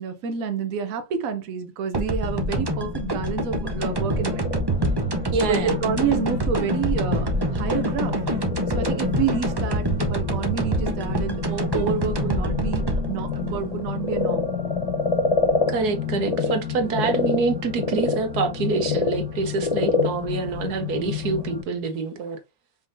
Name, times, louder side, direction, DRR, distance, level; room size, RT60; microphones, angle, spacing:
voice 1, 0.0-4.5 5.4-8.2 8.7-14.5, right 7 dB, 70° right, 1.1 m, -28 dB
sound 1, 1.9-14.7, right 2 dB, 35° right, 0.3 m, -26 dB
sound 2, 2.2-21.6, left 8 dB, 75° left, 2.8 m, -32 dB
Frog, 3.6-16.5 16.9-21.5, left 3 dB, 35° left, 0.5 m, -29 dB
voice 2, 5.3-5.7 15.7-22.4, right 4 dB, 90° right, 1.6 m, -26 dB
5.2 x 3.6 x 2.5 m
omnidirectional pair, 1.6 m